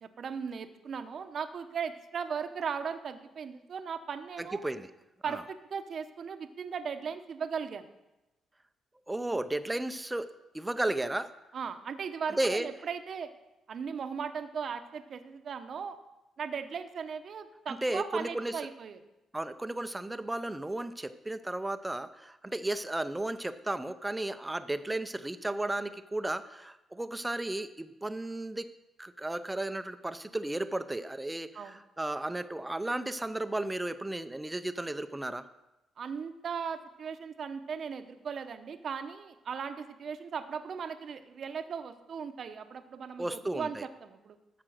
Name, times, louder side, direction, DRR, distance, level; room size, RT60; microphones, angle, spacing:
voice 1, 0.0-4.6 5.2-7.9 11.5-13.3 13.7-16.0 16.4-19.0 31.5-31.8 36.0-44.4, right 6 dB, 50° right, 9 dB, 0.8 m, -37 dB
voice 2, 4.4-4.9 5.3-5.4 9.1-10.3 10.5-11.3 12.4-12.7 17.7-18.6 19.3-28.7 29.0-35.5 43.2-43.9, right 1 dB, 10° right, 11 dB, 0.6 m, -34 dB
13.5 x 5.0 x 6.5 m, 0.98 s
cardioid pair, 115°, 0 cm